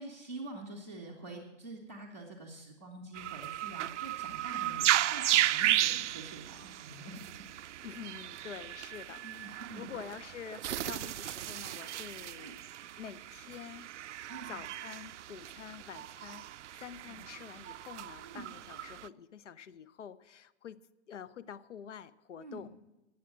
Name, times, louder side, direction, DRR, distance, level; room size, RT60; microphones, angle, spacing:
voice 1, 0.0-4.9 5.1-7.3 9.2-9.9 12.4-12.6 14.3-14.5 18.2-18.4 22.4-22.7, right 2 dB, 15° right, -2 dB, 0.4 m, -46 dB
sound 1, 3.1-19.1, right 13 dB, 80° right, 0.5 m, -35 dB
voice 2, 7.8-13.9 14.5-20.8 21.1-22.7, left 8 dB, 85° left, 18 dB, 0.9 m, -47 dB
18.0 x 7.5 x 6.1 m, 1.0 s
hypercardioid pair, 180°, 35 cm